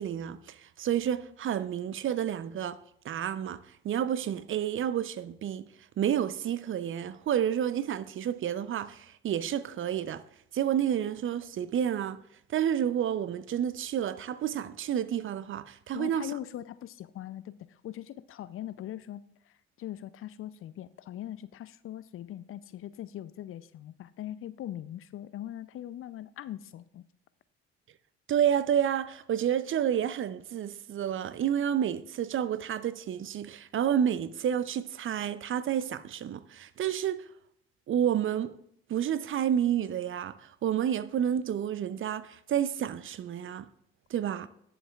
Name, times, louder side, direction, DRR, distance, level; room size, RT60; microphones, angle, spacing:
voice 1, 0.0-2.8 3.0-5.7 6.0-10.2 10.5-12.2 12.5-16.3 28.3-37.2 37.9-38.6 38.9-43.7 44.1-44.5, right 9 dB, 45° right, 0.6 m, -30 dB
voice 2, 15.9-27.1, left 12 dB, 45° left, 0.5 m, -41 dB
18.0 x 7.0 x 2.4 m
hypercardioid pair, 50°, 30 cm